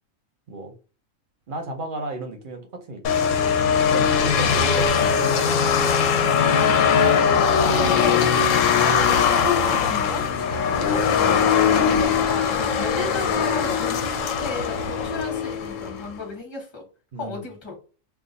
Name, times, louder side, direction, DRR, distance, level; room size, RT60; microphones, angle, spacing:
voice 1, 1.5-3.3 3.9-5.9 11.8-12.0 17.1-17.5, right 2 dB, 50° right, 0.7 m, -34 dB
sound 1, 3.0-16.1, left 6 dB, 70° left, 0.9 m, -20 dB
voice 2, 6.5-10.3 10.7-16.8 17.1-17.7, left 3 dB, 20° left, 0.9 m, -34 dB
2.5 x 2.3 x 3.8 m
omnidirectional pair, 1.4 m